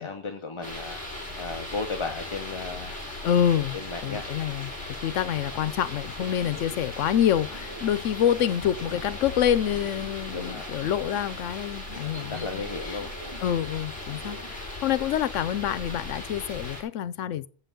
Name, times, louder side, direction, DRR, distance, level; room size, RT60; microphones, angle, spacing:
voice 1, 0.0-3.0 3.8-4.3 6.5-6.6 10.3-10.7 12.3-13.1, left 3 dB, 30° left, 0.7 m, -35 dB
sound 1, 0.6-16.8, left 2 dB, 5° left, 3.5 m, -38 dB
voice 2, 3.2-4.7 5.0-13.0 13.4-17.5, left 10 dB, 90° left, 1.0 m, -27 dB
sound 2, 5.3-14.8, right 2 dB, 25° right, 0.8 m, -48 dB
7.7 x 5.8 x 7.1 m
omnidirectional pair, 1.2 m